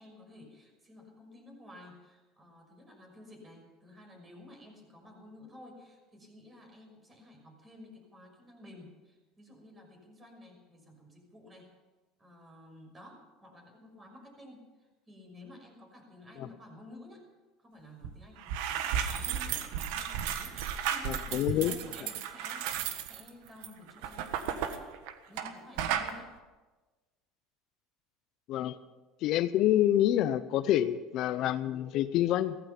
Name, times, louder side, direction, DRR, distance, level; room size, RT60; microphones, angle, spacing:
voice 1, 0.0-11.7 12.2-17.3 17.6-24.9 25.3-26.3, left 1 dB, 20° right, 2 dB, 5.9 m, -52 dB
sound 1, 18.0-18.1 18.4-25.5 25.8-26.1, right 9 dB, 75° right, 1.5 m, -34 dB
voice 2, 21.0-21.7 28.5-28.8 29.2-32.6, left 12 dB, 55° left, 13 dB, 0.6 m, -27 dB
16.5 x 15.0 x 5.9 m, 1.2 s
supercardioid pair, 115°, 0 cm